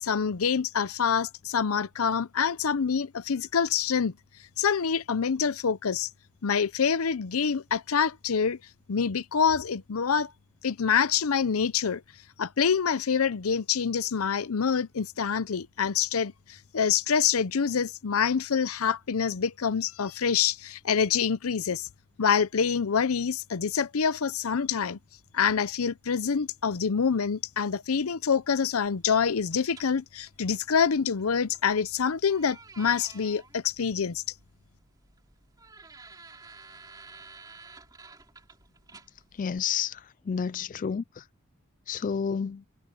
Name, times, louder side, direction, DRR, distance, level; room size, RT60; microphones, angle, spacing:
voice 1, 0.0-4.1 4.6-6.1 6.4-8.6 8.9-10.3 10.6-12.0 12.4-16.3 16.7-21.9 22.2-25.0 25.3-34.2, left 6 dB, 85° left, 0.6 m, -26 dB
sound 1, 28.9-39.6, right 4 dB, 20° right, 2.8 m, -52 dB
voice 2, 39.4-40.0 40.3-41.0 41.9-42.6, left 7 dB, 40° left, 0.3 m, -29 dB
head